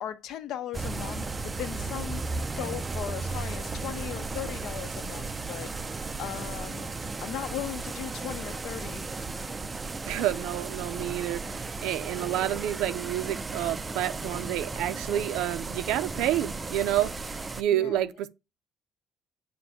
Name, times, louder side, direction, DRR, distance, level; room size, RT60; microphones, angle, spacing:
voice 1, 0.0-2.3 2.6-6.9 7.2-9.1 17.7-18.1, left 11 dB, 70° left, 0.7 m, -38 dB
sound 1, 0.7-17.6, right 3 dB, 20° right, 0.3 m, -35 dB
voice 2, 10.0-17.1 17.6-18.3, right 12 dB, 85° right, 0.5 m, -29 dB
6.8 x 2.6 x 5.5 m
cardioid pair, 135°, 0 cm